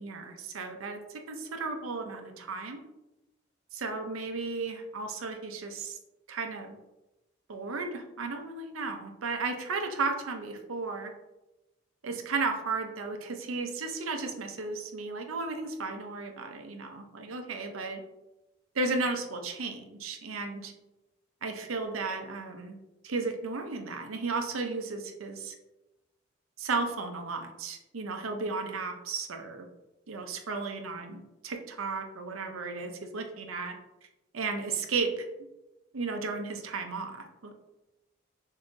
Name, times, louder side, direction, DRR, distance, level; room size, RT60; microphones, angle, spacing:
voice 1, 0.0-2.8 3.7-6.0 6.3-6.8 7.5-11.1 12.0-18.0 18.7-20.7 21.4-22.7 23.0-25.5 26.6-29.7 30.1-33.8 34.3-35.1 35.9-37.6, right 4 dB, 85° right, 5 dB, 0.7 m, -34 dB
6.8 x 2.7 x 2.6 m, 0.98 s
head